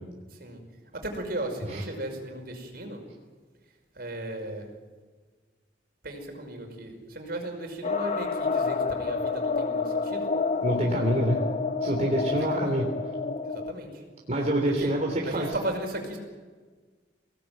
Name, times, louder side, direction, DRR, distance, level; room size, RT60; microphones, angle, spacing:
voice 1, 0.9-3.0 4.0-4.7 6.0-10.2 12.3-12.4 12.6-12.8 13.7-13.9 14.8-14.9 15.3-16.2, right 1 dB, 60° right, 4 dB, 5.4 m, -35 dB
sound 1, 7.8-13.7, left 4 dB, 40° left, 1.2 m, -29 dB
voice 2, 10.6-11.4 11.8-12.9 14.3-15.5, right 1 dB, 40° right, 0 dB, 3.4 m, -26 dB
25.0 x 18.5 x 9.3 m, 1.4 s
head